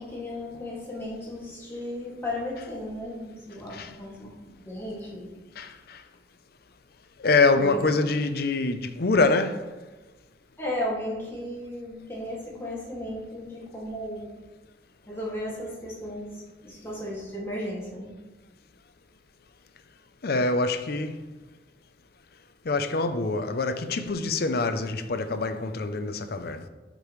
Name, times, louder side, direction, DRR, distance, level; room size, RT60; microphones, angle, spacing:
voice 1, 0.0-5.4 7.5-7.8 8.2-8.3 10.6-14.4 15.1-18.1, left 1 dB, 15° left, 2.3 m, -35 dB
voice 2, 5.6-6.0 7.2-9.6 20.2-21.2 22.6-26.6, left 3 dB, 60° left, 0.6 m, -25 dB
11.5 x 5.2 x 3.2 m
head